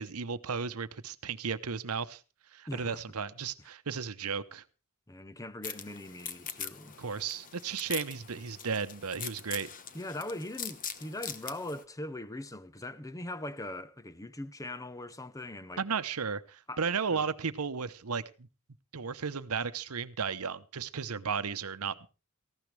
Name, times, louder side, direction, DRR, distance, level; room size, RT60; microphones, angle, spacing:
voice 1, 0.0-2.2 2.5-4.6 7.0-9.7 15.8-18.2 18.9-21.9, right 5 dB, 80° right, 0.9 m, -34 dB
voice 2, 2.7-3.0 5.1-7.0 9.9-15.8 16.7-16.8 17.1-17.3, left 1 dB, 15° left, 0.8 m, -41 dB
sound 1, 5.6-11.8, left 8 dB, 40° left, 1.1 m, -42 dB
18.0 x 15.0 x 3.4 m
head